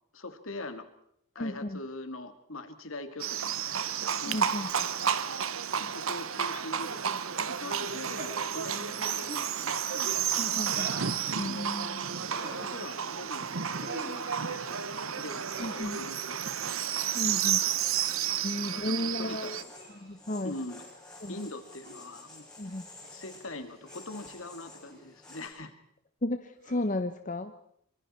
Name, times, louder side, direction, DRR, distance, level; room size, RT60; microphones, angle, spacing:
voice 1, 0.1-0.8 1.3-4.5 5.8-9.3 9.6-10.6 11.5-11.7 12.2-16.4 18.7-19.7 20.4-20.8 21.3-22.5 23.1-25.7, left 2 dB, 70° left, 8 dB, 2.3 m, -43 dB
voice 2, 1.4-1.8 4.3-4.7 10.4-10.9 11.4-12.1 15.6-16.0 17.1-17.6 18.4-19.6 20.0-20.5 21.2-21.4 22.6-22.9 26.2-27.5, left 1 dB, 35° left, 8 dB, 0.9 m, -33 dB
Livestock farm animals working animals, 3.2-19.6, right 8 dB, 75° right, 1.0 m, -31 dB
sound 1, 8.1-8.3 9.2-9.5 10.7-11.1 12.2-12.7 13.8-14.2 15.5-15.9 17.2-17.4 18.5-18.7 19.7-20.2 21.8-22.0 23.0-23.1 23.8-24.1 24.9-25.0 26.6-27.0, right 1 dB, 50° right, 4.6 m, -44 dB
sound 2, 12.6-25.5, left 2 dB, 5° left, 6.6 m, -55 dB
25.0 x 24.5 x 4.4 m, 0.72 s
head